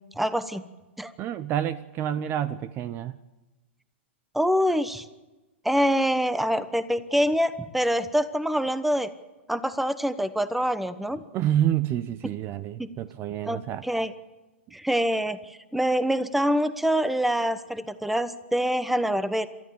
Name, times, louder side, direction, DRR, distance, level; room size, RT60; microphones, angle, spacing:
voice 1, 0.2-0.6 1.0-1.1 4.3-5.1 5.6-9.1 9.5-11.2 12.8-12.9 13.5-14.1 14.7-19.5, equal, ahead, 14 dB, 1.0 m, -25 dB
voice 2, 1.2-3.1 11.3-13.9, right 11 dB, 35° right, 16 dB, 0.8 m, -28 dB
29.5 x 13.5 x 7.1 m, 1.1 s
hypercardioid pair, 115°, 7 cm